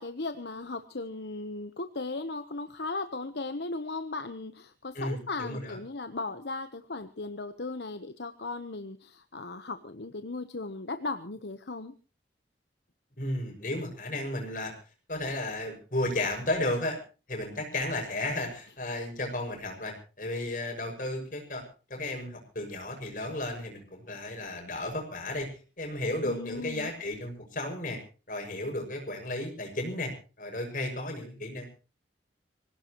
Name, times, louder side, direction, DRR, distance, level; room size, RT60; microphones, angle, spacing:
voice 1, 0.0-11.9 26.2-26.9, left 3 dB, 70° left, 9 dB, 1.1 m, -37 dB
voice 2, 4.9-5.8 13.2-14.7 15.1-17.0 17.3-21.6 21.9-25.5 25.8-28.0 28.3-30.1 30.4-31.7, left 1 dB, 45° left, 3 dB, 6.4 m, -33 dB
25.0 x 17.0 x 3.1 m, 0.36 s
head